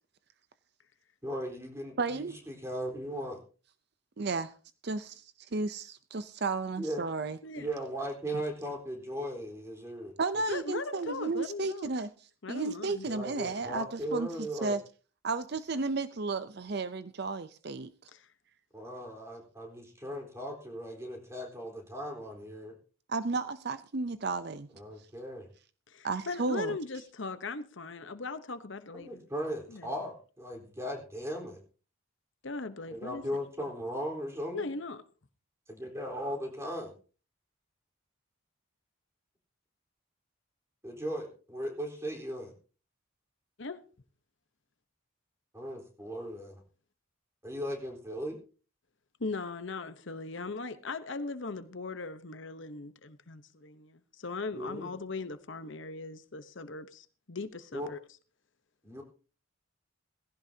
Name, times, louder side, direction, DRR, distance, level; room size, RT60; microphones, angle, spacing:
voice 1, 1.2-3.4 6.8-7.0 7.6-10.1 13.1-14.8 18.7-22.7 24.8-25.5 28.9-31.6 32.9-34.7 35.7-36.9 40.8-42.5 45.5-46.6 47.4-48.4 54.5-54.9 57.7-57.9 58.8-59.0, equal, 15° right, 4.1 m, -37 dB
voice 2, 2.0-2.4 4.2-4.5 4.8-7.4 8.3-8.4 10.2-12.1 12.5-14.8 15.2-17.9 23.1-24.7 26.0-26.8, right 3 dB, 50° right, 0.6 m, -33 dB
voice 3, 10.5-11.9 12.4-13.1 18.1-18.3 25.9-29.2 29.7-29.9 32.4-33.2 34.5-35.0 43.6-43.8 49.2-58.0, left 3 dB, 60° left, 1.0 m, -39 dB
18.0 x 16.0 x 2.8 m
head